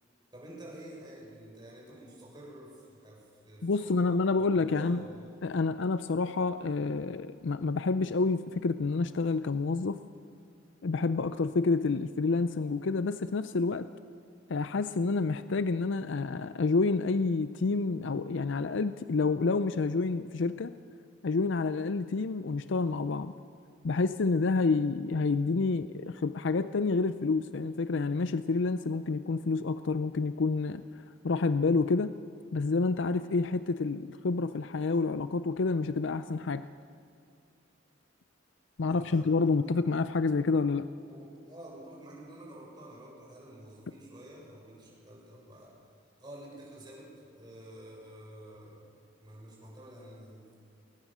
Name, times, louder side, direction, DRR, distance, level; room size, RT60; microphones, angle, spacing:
voice 1, 0.3-4.1 4.4-4.5 4.7-5.3 38.9-39.3 41.0-45.8 46.2-50.5, right 1 dB, 20° right, -4 dB, 7.0 m, -49 dB
voice 2, 3.6-5.0 5.4-10.0 10.8-13.9 14.5-20.7 21.2-23.3 23.8-30.8 31.2-32.1 32.5-36.6 38.8-40.9, left 3 dB, 65° left, 12 dB, 0.5 m, -28 dB
21.5 x 19.0 x 7.4 m, 2.4 s
head